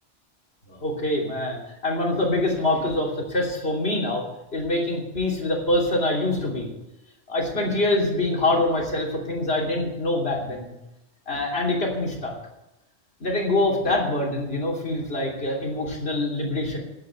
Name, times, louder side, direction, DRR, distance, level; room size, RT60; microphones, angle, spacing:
voice 1, 0.7-1.6 1.8-4.2 4.5-6.7 7.3-10.7 11.3-12.3 13.2-16.8, left 2 dB, 55° left, -2 dB, 3.2 m, -25 dB
10.5 x 9.3 x 8.3 m, 0.93 s
omnidirectional pair, 1.2 m